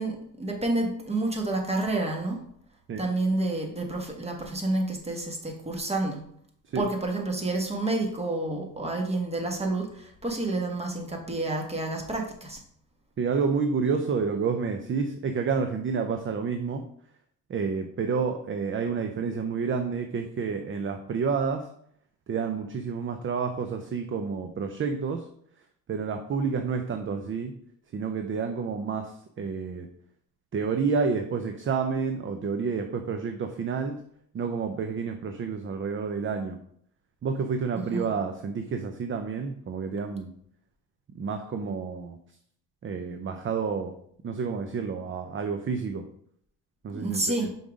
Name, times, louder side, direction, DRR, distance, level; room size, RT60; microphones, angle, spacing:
voice 1, 0.0-2.4 3.0-6.2 6.7-12.6 37.7-38.1 46.9-47.5, right 2 dB, 15° right, 2 dB, 1.5 m, -29 dB
voice 2, 13.2-16.8 17.5-21.7 22.3-25.3 25.9-27.5 27.9-29.9 30.5-34.0 34.3-36.6 37.2-40.3 41.1-42.2 42.8-43.9 44.2-46.0 46.8-47.5, right 5 dB, 35° right, 6 dB, 0.6 m, -29 dB
5.5 x 3.9 x 4.9 m, 0.67 s
cardioid pair, 100°, 36 cm